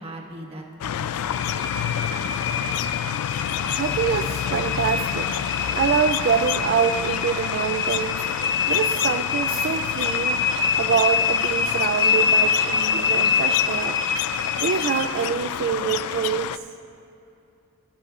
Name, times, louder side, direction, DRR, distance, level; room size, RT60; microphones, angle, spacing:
voice 1, 0.0-2.2 2.6-2.8, right 1 dB, 25° right, -1 dB, 1.4 m, -41 dB
sound 1, 0.8-16.6, left 9 dB, 75° left, 0.3 m, -29 dB
sound 2, 1.3-15.1, left 6 dB, 55° left, 1.0 m, -25 dB
voice 2, 3.7-5.3 5.7-8.2 8.7-10.4 10.8-14.0 14.6-16.7, right 7 dB, 50° right, 8 dB, 0.3 m, -25 dB
22.5 x 12.0 x 2.4 m, 2.9 s
head